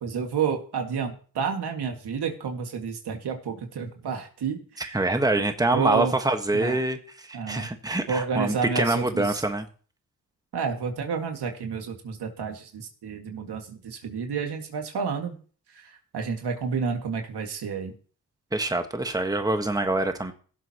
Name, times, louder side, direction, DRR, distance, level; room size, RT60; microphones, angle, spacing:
voice 1, 0.0-4.6 5.7-6.1 6.5-6.8 7.3-7.7 8.1-9.4 10.5-15.4 15.8-17.9, right 6 dB, 75° right, 3 dB, 2.2 m, -30 dB
voice 2, 4.8-9.7 18.5-20.3, right 2 dB, 10° right, 6 dB, 1.4 m, -25 dB
17.0 x 7.7 x 3.0 m, 0.41 s
cardioid pair, 55°, 39 cm